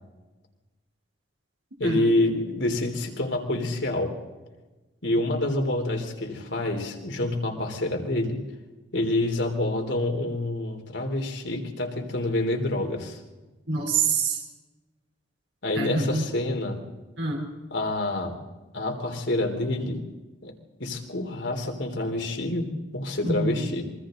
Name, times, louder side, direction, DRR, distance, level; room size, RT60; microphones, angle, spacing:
voice 1, 1.8-4.2 5.0-8.4 8.9-13.2 15.6-16.8 17.7-18.4 18.7-20.0 20.4-20.5 20.8-23.8, left 1 dB, 80° left, 3 dB, 3.7 m, -27 dB
voice 2, 13.7-14.4 15.7-16.3 17.2-17.5 23.2-23.7, right 4 dB, 85° right, -1 dB, 3.7 m, -26 dB
27.5 x 24.0 x 4.0 m, 1.2 s
head